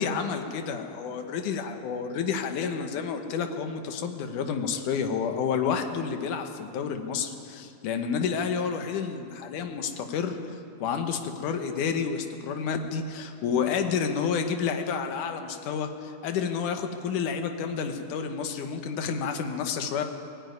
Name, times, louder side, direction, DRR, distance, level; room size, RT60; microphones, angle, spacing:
voice 1, 0.0-10.4 10.8-20.0, left 6 dB, 70° left, 6 dB, 2.7 m, -30 dB
19.5 x 14.5 x 9.5 m, 2.5 s
omnidirectional pair, 3.8 m